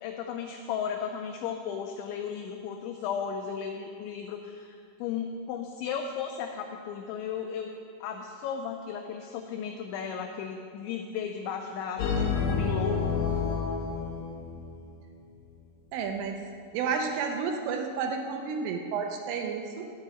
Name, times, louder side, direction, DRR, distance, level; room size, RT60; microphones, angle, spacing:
voice 1, 0.0-7.7 8.0-13.0, left 7 dB, 80° left, 3 dB, 2.7 m, -35 dB
sound 1, 12.0-14.9, left 5 dB, 60° left, 2.7 m, -29 dB
voice 2, 15.9-16.5 16.7-19.9, right 5 dB, 85° right, 3 dB, 3.2 m, -31 dB
11.5 x 5.3 x 8.7 m, 2.3 s
omnidirectional pair, 5.7 m